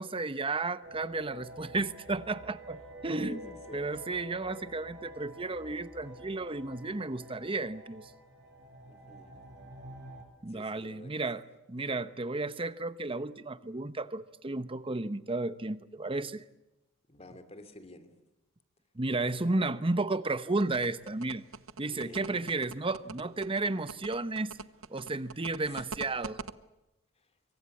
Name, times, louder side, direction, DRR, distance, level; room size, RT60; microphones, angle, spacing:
voice 1, 0.0-3.4 3.7-8.1 10.4-11.4 11.7-16.4 18.9-21.4 21.8-24.6 24.9-26.4, right 2 dB, 25° right, 1.0 m, -33 dB
sound 1, 0.8-10.2, right 1 dB, 55° right, 7.6 m, -49 dB
voice 2, 3.2-4.0 8.9-9.4 10.5-11.2 11.8-12.0 17.1-18.2 21.8-22.3 25.7-25.8, left 1 dB, 30° left, 2.8 m, -50 dB
sound 2, 20.6-26.5, right 4 dB, 85° right, 0.9 m, -42 dB
25.5 x 23.5 x 8.5 m
head